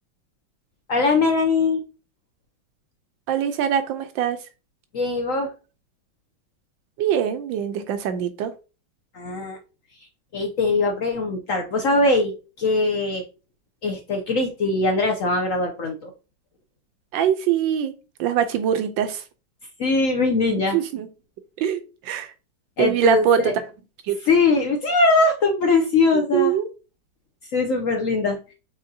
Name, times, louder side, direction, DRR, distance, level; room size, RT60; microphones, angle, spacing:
voice 1, 0.9-1.8 4.9-5.5 9.1-9.6 10.3-12.3 12.6-13.2 13.8-16.1 19.8-20.8 22.8-23.5 24.2-26.5 27.5-28.5, left 3 dB, 65° left, 0.8 m, -21 dB
voice 2, 3.3-4.4 7.0-8.5 17.1-17.9 18.2-19.2 20.5-21.1 21.6-22.3 22.8-23.5 24.1-24.2 26.1-26.7, right 9 dB, 80° right, 1.4 m, -23 dB
5.3 x 3.5 x 2.7 m
omnidirectional pair, 2.0 m